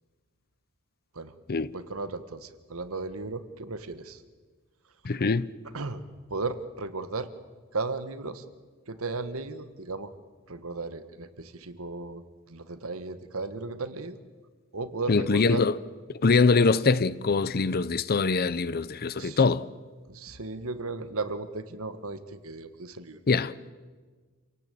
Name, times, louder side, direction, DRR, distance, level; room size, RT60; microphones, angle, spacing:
voice 1, 1.7-4.2 5.0-5.1 5.7-6.0 6.3-7.3 7.7-8.4 8.9-10.1 10.5-14.2 14.7-15.6 19.2-19.4 20.1-23.2, right 3 dB, 70° right, 1.4 m, -35 dB
voice 2, 5.0-5.5 15.1-15.7 16.1-19.7 23.3-23.5, left 4 dB, 45° left, 0.7 m, -23 dB
27.5 x 18.0 x 8.6 m
head